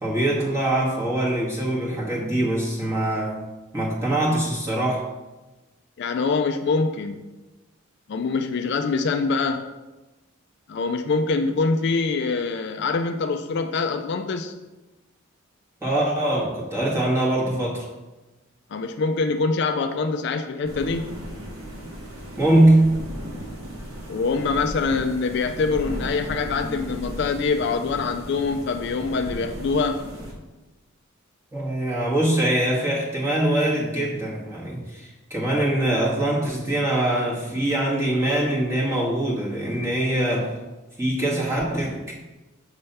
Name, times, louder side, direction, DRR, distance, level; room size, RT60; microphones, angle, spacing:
voice 1, 0.0-3.4 3.7-5.0 15.8-17.9 22.4-23.0 31.5-40.5 41.0-42.1, right 1 dB, 15° right, -5 dB, 1.5 m, -23 dB
voice 2, 6.0-7.2 8.1-9.7 10.7-14.5 18.7-21.1 24.1-30.0, left 4 dB, 55° left, 7 dB, 0.3 m, -24 dB
sound 1, 20.6-30.3, equal, 80° right, 1.5 m, -36 dB
6.6 x 3.4 x 5.5 m, 1.1 s
head